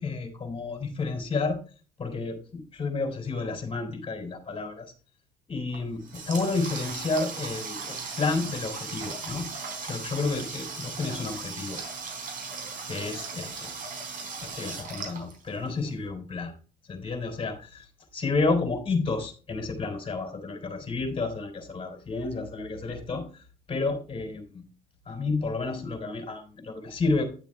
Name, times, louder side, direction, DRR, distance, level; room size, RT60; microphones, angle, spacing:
voice 1, 0.0-1.6 2.0-4.9 5.5-9.5 9.8-11.8 12.9-13.7 14.4-16.5 16.9-24.6 25.1-27.3, left 3 dB, 30° left, 5 dB, 4.0 m, -31 dB
Water tap faucet, 5.7-15.9, right 4 dB, 55° right, 3.9 m, -37 dB
11.0 x 7.2 x 3.3 m, 0.37 s
cardioid pair, 110°, 17 cm